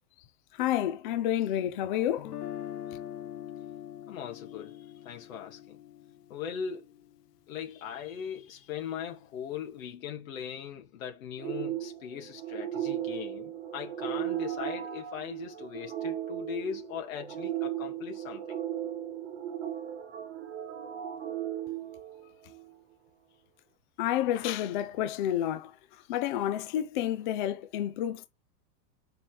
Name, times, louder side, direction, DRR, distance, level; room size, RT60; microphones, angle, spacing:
voice 1, 0.5-2.3 24.0-28.3, left 11 dB, 30° left, 0.7 m, -30 dB
Guitar, 2.2-8.2, left 11 dB, 85° left, 1.5 m, -43 dB
voice 2, 4.1-5.8 6.3-6.9 7.5-18.6, left 8 dB, 55° left, 2.2 m, -39 dB
sound 1, 11.4-22.7, right 11 dB, 25° right, 1.5 m, -36 dB
7.1 x 5.7 x 3.4 m
supercardioid pair, 175°, 47 cm